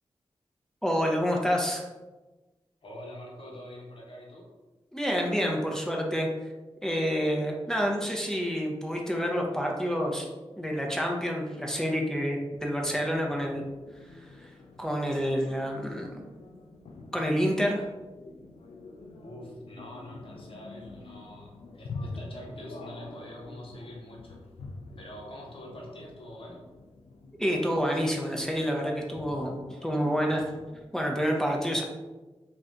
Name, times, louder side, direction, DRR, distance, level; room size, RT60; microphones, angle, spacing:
voice 1, 0.8-1.9 4.9-6.5 6.8-10.3 10.6-13.6 14.1-14.5 14.8-16.1 17.1-17.9 27.4-29.6 29.8-30.4 30.9-31.8, equal, 5° left, 0 dB, 0.6 m, -28 dB
voice 2, 2.8-4.5 19.2-24.4 25.0-26.6, left 1 dB, 60° left, -2 dB, 0.9 m, -45 dB
sound 1, 12.5-30.8, left 3 dB, 80° left, 0.4 m, -46 dB
2.6 x 2.5 x 3.3 m, 1.2 s
cardioid pair, 50°, 10 cm